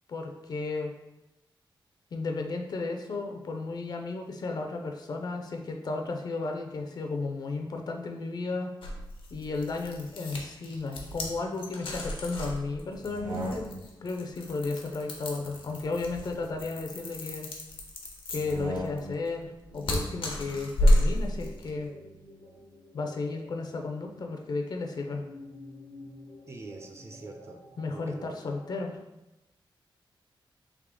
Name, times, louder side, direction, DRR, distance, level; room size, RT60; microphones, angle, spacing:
voice 1, 0.1-0.9 2.1-8.7 9.3-13.7 14.0-17.5 18.3-21.9 22.9-25.2 27.8-29.0, left 3 dB, 50° left, 3 dB, 0.5 m, -34 dB
sound 1, 8.8-21.8, left 1 dB, 80° left, 0.8 m, -31 dB
sound 2, 13.0-14.1 15.4-17.0 18.3-19.3, equal, 65° right, 1.1 m, -40 dB
sound 3, 19.6-29.0, left 1 dB, 85° right, 1.1 m, -51 dB
voice 2, 26.5-27.6 27.9-28.4, right 3 dB, 30° right, 3 dB, 0.4 m, -44 dB
3.6 x 3.1 x 3.6 m, 0.96 s
wide cardioid pair, 175°, 9 cm